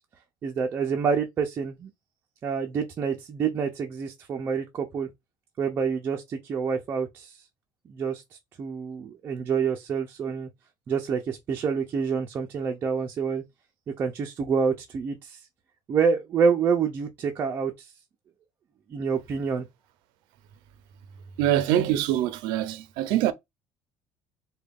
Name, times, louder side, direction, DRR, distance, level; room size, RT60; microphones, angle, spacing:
voice 1, 0.4-1.9 2.4-5.1 5.6-7.4 7.9-8.2 8.6-10.5 10.9-13.4 14.0-15.4 15.9-17.9 18.9-19.7, right 6 dB, 30° right, 0.4 m, -27 dB
voice 2, 21.4-23.3, right 12 dB, 80° right, 0.5 m, -24 dB
3.8 x 2.2 x 3.4 m
cardioid pair, 175°, 8 cm